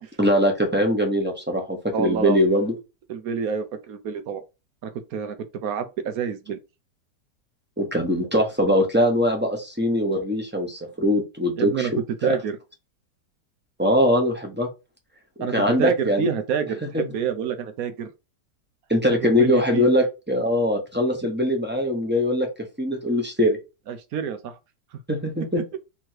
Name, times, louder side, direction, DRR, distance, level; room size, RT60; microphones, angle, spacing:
voice 1, 0.2-2.7 7.8-12.0 13.8-14.7 15.5-16.3 16.9-17.0 18.9-22.5 22.8-23.6 25.1-25.6, equal, 10° right, 0.9 m, -22 dB
voice 2, 1.9-2.5 3.1-4.4 4.8-6.6 11.6-11.9 12.2-12.6 15.4-15.5 15.8-18.1 19.1-19.9 23.9-24.5, right 7 dB, 65° right, 1.0 m, -28 dB
3.5 x 3.1 x 4.6 m
omnidirectional pair, 1.8 m